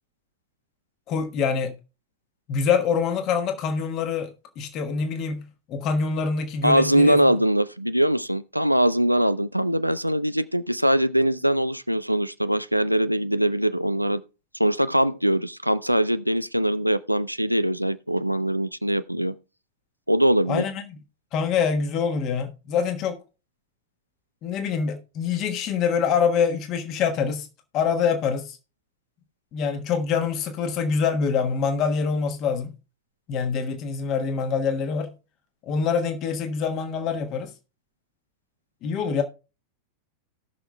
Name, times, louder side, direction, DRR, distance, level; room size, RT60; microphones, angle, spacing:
voice 1, 1.1-1.7 2.5-7.2 20.5-21.0 21.3-23.2 24.4-27.5 27.7-28.6 29.5-32.7 33.3-35.1 35.6-37.5 38.8-39.2, left 6 dB, 35° left, 1.3 m, -25 dB
voice 2, 6.6-14.2 14.6-19.3 20.1-20.6, right 1 dB, 90° right, 0.4 m, -22 dB
18.0 x 6.1 x 2.2 m
figure-of-eight pair, 90°, 0 cm